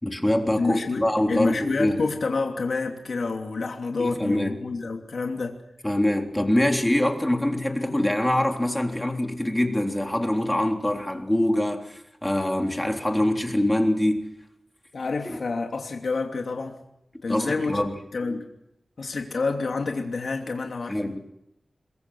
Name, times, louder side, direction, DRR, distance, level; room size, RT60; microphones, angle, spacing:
voice 1, 0.0-2.0 4.0-4.5 5.8-14.3 17.3-17.9 20.9-21.2, left 1 dB, 10° left, 3 dB, 3.6 m, -24 dB
voice 2, 0.6-5.6 14.9-16.8 17.2-17.8 18.1-18.5 19.0-21.1, left 3 dB, 65° left, 2 dB, 2.9 m, -28 dB
28.0 x 22.0 x 6.4 m, 0.82 s
wide cardioid pair, 105°, 0 cm